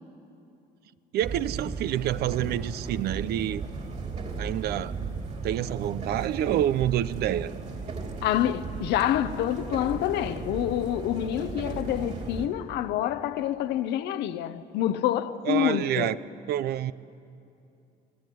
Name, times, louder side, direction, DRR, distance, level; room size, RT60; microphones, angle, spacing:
voice 1, 1.1-3.6 4.4-4.9 5.4-7.6 15.4-16.2 16.5-16.9, right 12 dB, 70° right, 16 dB, 0.5 m, -27 dB
sound 1, 1.2-12.5, right 4 dB, 40° right, 3.3 m, -36 dB
voice 2, 8.2-16.1, left 11 dB, 80° left, 10 dB, 0.9 m, -27 dB
25.0 x 17.5 x 9.3 m, 2.7 s
cardioid pair, 110°, 17 cm